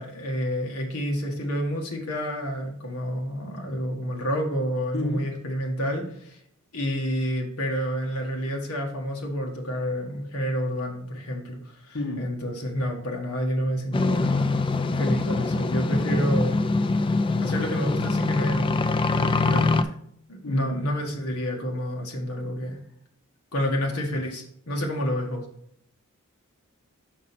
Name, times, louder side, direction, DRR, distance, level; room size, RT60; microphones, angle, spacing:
voice 1, 0.0-6.4 6.7-16.6 17.4-19.9 20.3-22.8 23.5-25.4, equal, 85° left, 1 dB, 1.6 m, -29 dB
voice 2, 4.9-5.3 11.9-12.2 20.4-20.8 23.6-23.9, left 1 dB, 55° left, 1 dB, 1.2 m, -31 dB
sound 1, 13.9-19.8, left 3 dB, 25° left, 0.3 m, -24 dB
6.2 x 5.7 x 4.2 m, 0.71 s
head